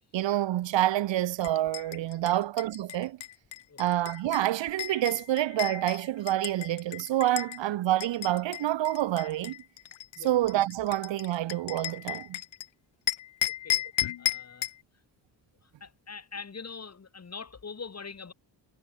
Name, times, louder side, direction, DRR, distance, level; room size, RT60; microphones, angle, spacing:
voice 1, 0.1-3.2 3.8-9.6 10.2-12.4, right 14 dB, 80° right, 0.9 m, -27 dB
sound 1, 1.4-7.6 8.0-12.7 13.1-14.8, left 12 dB, 85° left, 1.5 m, -35 dB
voice 2, 13.4-13.8 14.2-14.7 15.6-18.3, left 5 dB, 35° left, 4.4 m, -43 dB
cardioid pair, 115°, 44 cm